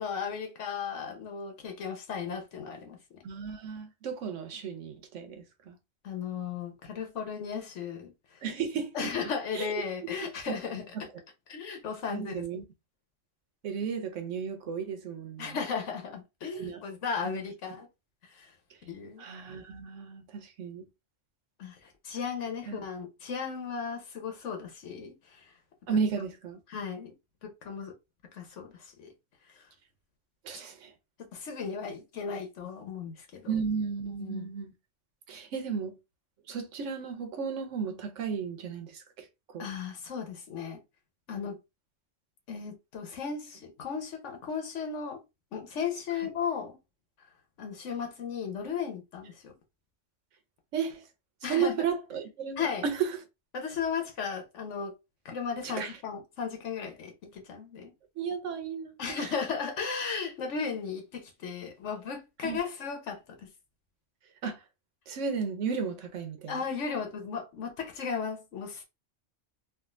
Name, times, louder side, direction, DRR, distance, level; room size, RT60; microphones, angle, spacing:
voice 1, 0.0-3.0 6.0-8.4 8.9-10.8 11.5-12.4 15.4-17.9 18.2-18.5 18.8-19.2 21.6-25.5 26.7-27.1 27.4-27.9 28.3-29.1 31.3-33.5 34.2-34.5 39.6-40.8 41.3-41.6 42.5-45.2 45.5-46.7 47.6-49.5 51.4-51.7 52.6-52.8 53.5-54.9 55.2-57.9 59.0-63.5 66.5-68.8, left 6 dB, 80° left, 1.2 m, -35 dB
voice 2, 3.2-5.8 8.4-9.1 9.5-10.1 10.5-11.1 12.1-12.6 13.6-15.6 16.5-16.8 17.2-17.4 19.2-20.9 22.7-22.8 25.9-26.6 30.4-30.9 33.5-34.7 35.3-36.0 36.5-39.7 50.7-51.0 51.4-53.2 55.6-56.0 58.2-59.3 62.4-62.6 64.4-64.6 65.1-66.5, right 6 dB, 90° right, 1.1 m, -34 dB
3.5 x 2.4 x 2.4 m
omnidirectional pair, 1.2 m